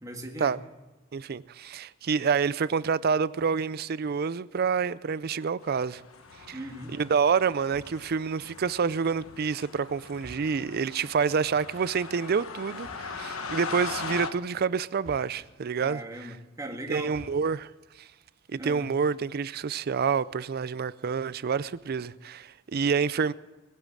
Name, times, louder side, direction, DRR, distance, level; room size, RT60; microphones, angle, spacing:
voice 1, 0.0-0.5 6.5-6.9 15.8-17.2 18.6-18.9, right 1 dB, 15° right, 1.6 m, -39 dB
voice 2, 1.1-6.0 6.5-6.6 6.9-16.3 16.9-17.7 18.0-18.1 18.5-23.3, right 6 dB, 50° right, 0.4 m, -28 dB
sound 1, 5.6-14.3, left 5 dB, 90° left, 1.2 m, -40 dB
sound 2, 7.6-8.2 10.2-10.8 12.7-13.3 15.0-15.8 17.0-17.7, right 1 dB, 70° right, 2.2 m, -50 dB
19.5 x 8.6 x 7.5 m
head